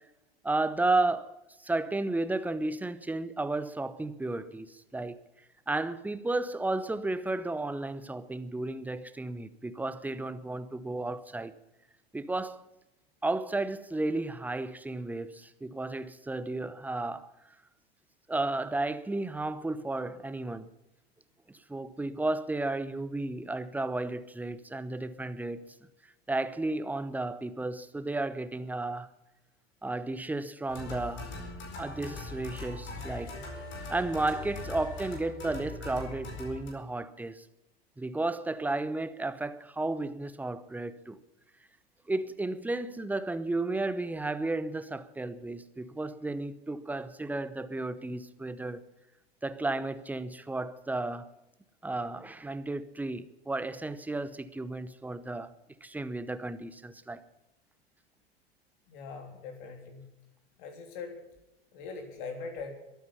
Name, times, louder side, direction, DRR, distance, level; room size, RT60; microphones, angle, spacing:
voice 1, 0.4-1.3 1.6-5.2 5.7-11.5 12.1-12.6 13.2-17.3 18.3-20.7 21.5-25.6 26.3-29.1 29.8-31.3 31.8-33.3 33.9-37.4 38.0-41.2 42.1-48.9 49.4-51.3 51.8-55.5 55.8-57.2, right 2 dB, 5° right, 0.8 m, -33 dB
sound 1, 30.7-36.7, left 2 dB, 35° left, 4.8 m, -41 dB
voice 2, 58.9-60.1 60.6-61.2 61.7-62.7, left 4 dB, 55° left, 3.3 m, -41 dB
22.5 x 9.4 x 5.5 m
figure-of-eight pair, 85°, 31 cm